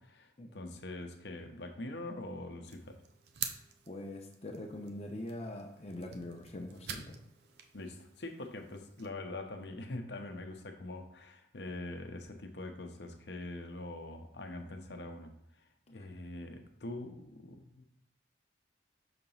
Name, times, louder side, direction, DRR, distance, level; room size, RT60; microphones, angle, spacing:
voice 1, 0.0-3.0 7.7-15.3 15.9-17.8, left 2 dB, 65° left, 5 dB, 0.8 m, -43 dB
sound 1, 2.7-9.1, right 7 dB, 60° right, 0.5 m, -47 dB
voice 2, 3.9-7.2, left 1 dB, 35° left, 2 dB, 0.7 m, -43 dB
5.9 x 2.9 x 5.4 m, 0.75 s
head